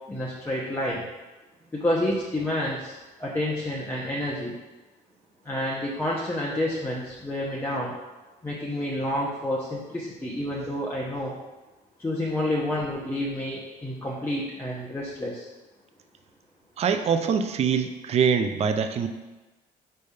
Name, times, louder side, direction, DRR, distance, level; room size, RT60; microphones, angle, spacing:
voice 1, 0.1-1.0 1.7-4.6 5.4-7.9 8.4-11.3 12.0-15.5, left 1 dB, 15° left, -5 dB, 1.0 m, -29 dB
voice 2, 16.8-19.1, right 6 dB, 40° right, 8 dB, 0.5 m, -24 dB
5.4 x 3.3 x 5.4 m, 1.2 s
cardioid pair, 110°, 17 cm